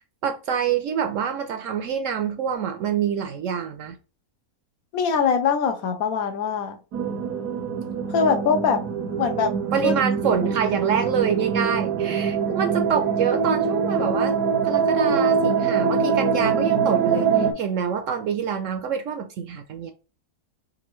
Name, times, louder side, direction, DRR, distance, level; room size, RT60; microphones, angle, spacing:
voice 1, 0.2-4.0 9.7-14.3 14.6-19.9, right 7 dB, 65° right, 0.8 m, -26 dB
voice 2, 4.9-6.8 8.1-8.8 9.2-9.5 9.8-9.9 10.3-10.4, left 6 dB, 70° left, 1.0 m, -22 dB
sound 1, 6.9-17.5, right 6 dB, 85° right, 1.3 m, -23 dB
5.2 x 2.5 x 3.1 m
omnidirectional pair, 1.6 m